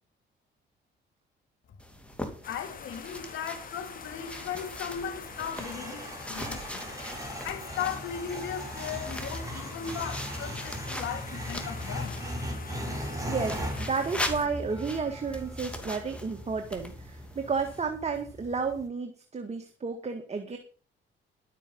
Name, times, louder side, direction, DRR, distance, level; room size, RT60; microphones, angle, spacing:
sound 1, 1.8-12.4 13.4-17.8, left 1 dB, 5° left, 2.9 m, -41 dB
sound 2, 2.4-14.5, left 6 dB, 45° left, 1.6 m, -45 dB
voice 1, 2.5-6.9 7.4-12.2, left 8 dB, 80° left, 2.5 m, -37 dB
sound 3, 4.0-18.9, equal, 15° right, 5.0 m, -39 dB
voice 2, 13.3-20.6, right 5 dB, 35° right, 1.8 m, -32 dB
12.0 x 8.5 x 5.5 m
cardioid pair, 90°, 20 cm